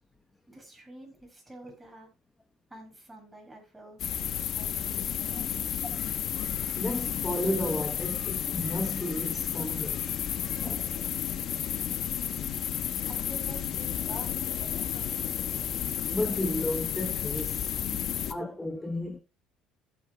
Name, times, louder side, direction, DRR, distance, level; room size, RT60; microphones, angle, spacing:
voice 1, 0.5-2.1 2.7-4.0 4.4-5.6 13.1-15.2, right 1 dB, 10° right, 7.8 m, -48 dB
sound 1, 4.0-18.3, left 9 dB, 50° left, 1.3 m, -32 dB
voice 2, 6.8-10.1 10.4-10.9 16.1-17.8 18.3-19.2, left 1 dB, 10° left, 1.1 m, -33 dB
16.0 x 9.0 x 2.5 m
cardioid pair, 120°, 0 cm